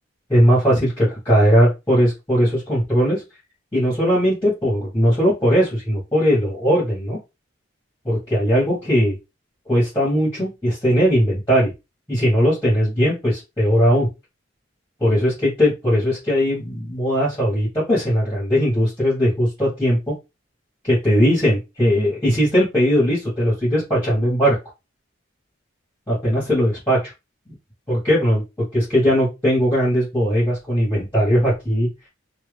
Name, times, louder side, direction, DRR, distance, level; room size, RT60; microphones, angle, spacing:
voice 1, 0.3-3.2 3.7-7.2 8.0-9.2 9.7-11.7 12.1-14.1 15.0-20.1 20.8-24.6 26.1-27.1 27.5-27.6 27.9-28.4 28.7-31.9, equal, 15° left, -8 dB, 1.5 m, -19 dB
2.8 x 2.7 x 3.4 m, 0.25 s
head